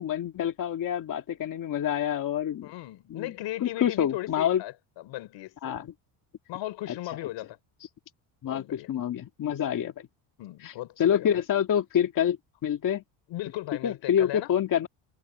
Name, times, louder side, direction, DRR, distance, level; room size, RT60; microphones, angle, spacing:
voice 1, 0.0-2.7 3.1-3.3 3.6-4.6 5.6-5.9 6.9-7.0 8.4-9.9 10.6-12.4 12.6-13.0 13.8-14.9, left 9 dB, 45° left, 2.3 m, -27 dB
voice 2, 2.6-5.6 6.5-7.6 8.5-8.9 10.4-11.4 13.3-14.5, left 16 dB, 70° left, 4.0 m, -37 dB
cardioid pair, 140°, 45 cm